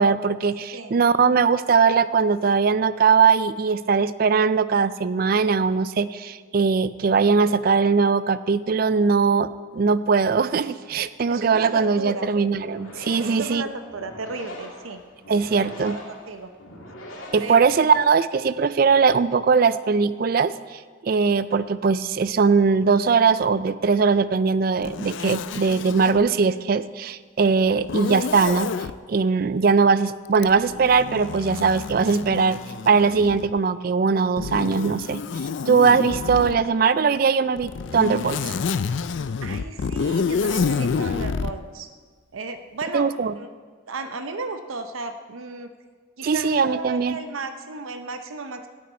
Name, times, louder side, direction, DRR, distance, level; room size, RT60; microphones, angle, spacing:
voice 1, 0.0-13.6 15.3-16.0 17.3-28.7 29.1-32.6 32.9-35.2 35.7-38.5 42.9-43.3 46.2-47.2, right 5 dB, 45° right, 15 dB, 0.3 m, -20 dB
voice 2, 11.3-12.3 13.2-15.0 15.3-15.4 15.8-16.5 17.4-17.7 39.4-41.9 42.3-43.1 43.3-43.5 43.9-45.7 46.2-48.7, right 3 dB, 80° right, 8 dB, 0.7 m, -34 dB
sound 1, 12.5-18.2, left 1 dB, 85° left, 2.4 m, -42 dB
Zipper (clothing), 24.8-26.2 27.8-28.9 30.3-33.6 34.4-36.6 37.6-41.5, left 5 dB, 65° left, 0.4 m, -28 dB
17.5 x 8.7 x 4.3 m, 1.5 s
head